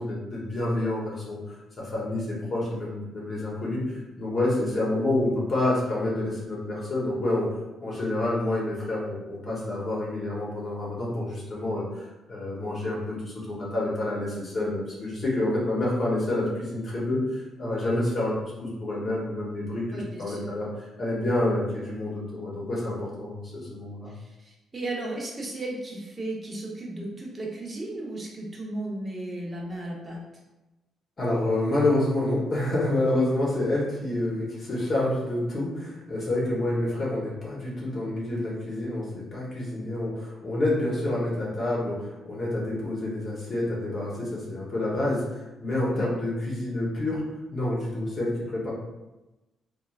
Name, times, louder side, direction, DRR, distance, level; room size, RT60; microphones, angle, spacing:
voice 1, 0.0-7.5 7.8-18.3 18.6-24.1 31.2-47.2 47.5-48.7, left 1 dB, 40° left, -5 dB, 0.8 m, -28 dB
voice 2, 19.9-20.5 24.1-30.2 45.9-46.1, right 2 dB, 30° right, -2 dB, 0.7 m, -35 dB
3.0 x 2.3 x 2.3 m, 1.0 s
cardioid pair, 90°, 0 cm